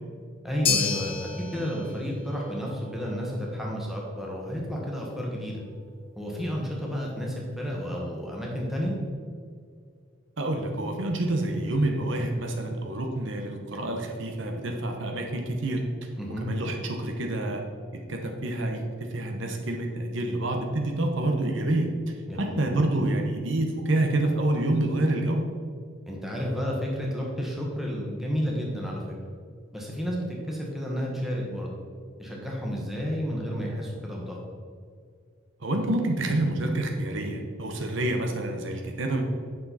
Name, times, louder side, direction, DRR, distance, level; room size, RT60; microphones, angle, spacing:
voice 1, 0.4-5.6 6.2-8.9 16.2-16.5 22.3-22.6 26.0-29.1 29.7-31.7 32.2-34.4, equal, ahead, -3 dB, 1.4 m, -31 dB
sound 1, 0.7-9.0, left 5 dB, 25° left, 1.1 m, -35 dB
voice 2, 10.4-15.8 16.4-17.6 18.1-18.8 19.1-21.9 22.4-25.4 35.6-39.2, right 1 dB, 65° right, 3 dB, 1.0 m, -27 dB
8.7 x 6.5 x 4.2 m, 2.1 s
head